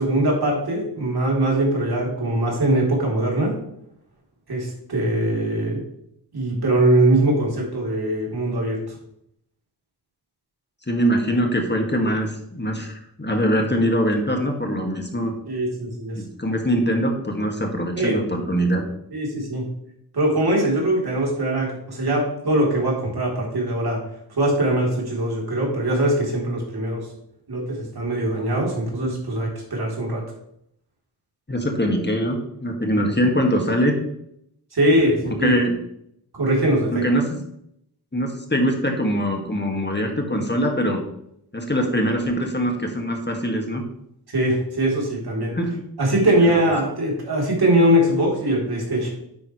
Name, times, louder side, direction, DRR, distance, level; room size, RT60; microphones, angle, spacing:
voice 1, 0.0-3.6 4.5-5.8 6.3-9.0 15.5-16.2 18.0-18.2 19.1-19.6 20.1-24.0 24.4-27.1 27.5-30.2 34.7-35.5 36.3-37.1 44.3-45.6 46.0-49.1, right 1 dB, 60° right, -2 dB, 3.9 m, -21 dB
voice 2, 10.9-15.3 16.1-18.8 31.5-33.9 35.2-35.8 36.9-37.4 38.1-41.0 41.5-43.8 45.5-45.8 46.4-46.6, equal, 25° left, 2 dB, 2.2 m, -23 dB
10.0 x 8.5 x 3.3 m, 0.74 s
cardioid pair, 50°, 42 cm